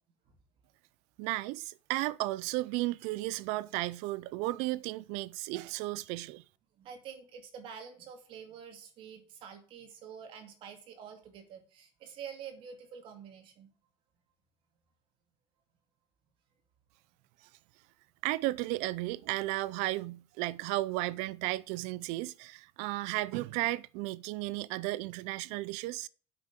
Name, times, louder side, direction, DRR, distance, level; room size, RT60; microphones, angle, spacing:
voice 1, 1.2-6.4 18.2-26.1, right 18 dB, 85° right, 0.6 m, -34 dB
voice 2, 6.8-13.7, right 7 dB, 50° right, 2.5 m, -47 dB
8.5 x 5.9 x 8.1 m
cardioid pair, 175°, 11 cm